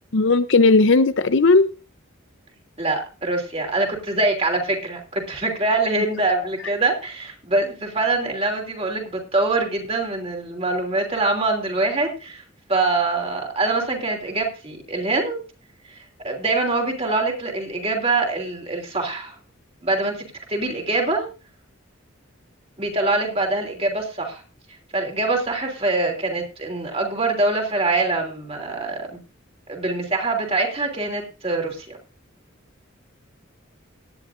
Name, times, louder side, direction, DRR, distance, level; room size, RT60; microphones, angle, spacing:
voice 1, 0.1-1.7, left 3 dB, 65° left, 0.6 m, -16 dB
voice 2, 2.8-12.4 12.7-15.4 15.9-19.4 19.8-21.3 22.8-24.4 24.9-29.2 29.7-32.0, right 2 dB, 30° right, 3.0 m, -24 dB
17.5 x 10.5 x 2.5 m
head